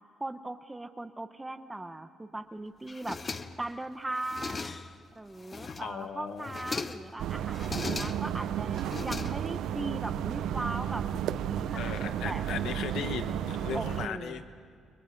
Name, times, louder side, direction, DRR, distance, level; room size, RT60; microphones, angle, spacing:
voice 1, 0.2-3.2 3.6-4.8 5.2-12.4 13.7-14.4, right 2 dB, 10° right, 9 dB, 0.8 m, -39 dB
sound 1, 2.9-3.8 4.1-5.0 5.4-6.0 6.4-7.1 7.5-8.4 8.8-9.7, left 4 dB, 25° left, 0.7 m, -38 dB
voice 2, 5.7-6.7 11.3-11.4 11.8-14.4, left 8 dB, 75° left, 8 dB, 1.1 m, -37 dB
sound 2, 7.2-14.1, right 10 dB, 75° right, 0.7 m, -33 dB
30.0 x 22.5 x 5.3 m, 2.2 s
cardioid pair, 145°, 0 cm